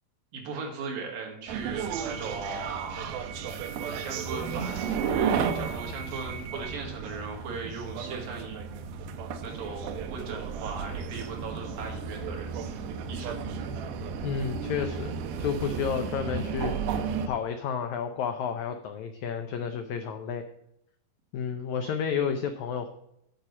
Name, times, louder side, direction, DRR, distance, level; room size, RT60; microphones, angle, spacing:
voice 1, 0.3-3.1 3.9-8.6 9.4-12.5 13.1-13.4, right 4 dB, 75° right, 1 dB, 3.6 m, -38 dB
sound 1, 1.5-17.3, right 6 dB, 90° right, 2.7 m, -33 dB
voice 2, 14.2-16.7 17.2-20.5 21.3-22.9, left 7 dB, 85° left, 7 dB, 1.6 m, -31 dB
9.3 x 5.0 x 7.1 m, 0.79 s
omnidirectional pair, 4.2 m